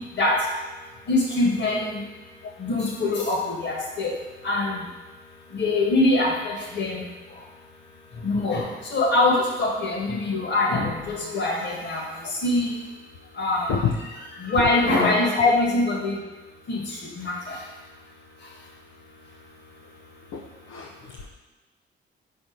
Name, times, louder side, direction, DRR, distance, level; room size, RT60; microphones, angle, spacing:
voice 1, 1.1-2.0 2.6-4.2 4.4-4.8 5.5-7.1 8.2-12.0 12.4-12.7 13.4-13.7 14.4-16.2 16.7-16.8 17.2-17.6, left 2 dB, 65° left, -1 dB, 1.8 m, -23 dB
voice 2, 20.7-21.3, left 5 dB, 85° left, 1 dB, 0.6 m, -24 dB
5.4 x 4.4 x 5.2 m, 1.2 s
cardioid pair, 90°, 20 cm